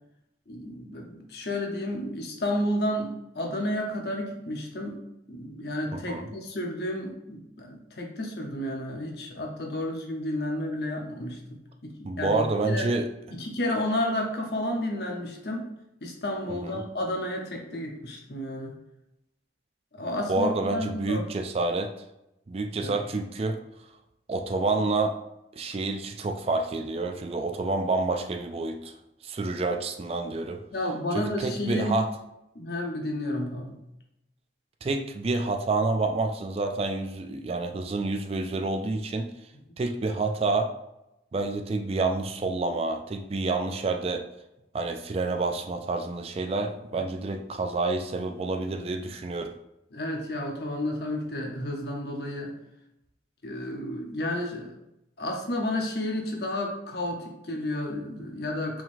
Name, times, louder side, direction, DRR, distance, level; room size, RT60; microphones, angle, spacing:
voice 1, 0.5-5.0 5.3-12.9 13.3-15.7 16.0-18.8 19.9-21.2 22.8-23.0 30.7-31.9 32.5-33.8 49.9-52.6 53.4-54.7 55.2-58.8, left 1 dB, 60° left, 1 dB, 0.9 m, -31 dB
voice 2, 5.9-6.3 12.0-13.1 16.5-16.8 20.3-22.0 22.5-23.6 24.3-25.2 25.5-28.9 29.2-30.6 31.1-32.1 34.8-39.3 39.8-40.7 41.3-44.2 44.7-49.5, right 3 dB, 35° right, 5 dB, 0.3 m, -28 dB
4.6 x 3.8 x 2.6 m, 0.87 s
head